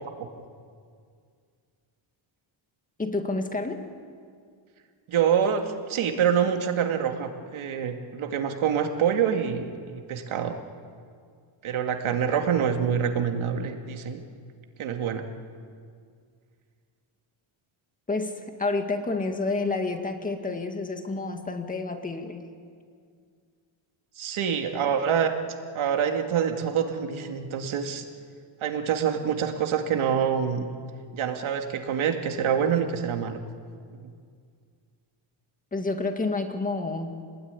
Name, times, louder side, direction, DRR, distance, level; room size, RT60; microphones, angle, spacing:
voice 1, 3.0-3.8 18.1-18.3 18.6-22.5 35.7-37.2, left 3 dB, 15° left, 5 dB, 2.0 m, -29 dB
voice 2, 5.1-10.5 11.6-14.2 14.8-15.2 24.2-25.3 25.7-28.0 28.6-30.7 31.1-33.4, right 7 dB, 70° right, 4 dB, 2.4 m, -26 dB
28.5 x 20.5 x 9.8 m, 2.2 s
wide cardioid pair, 175°, 50 cm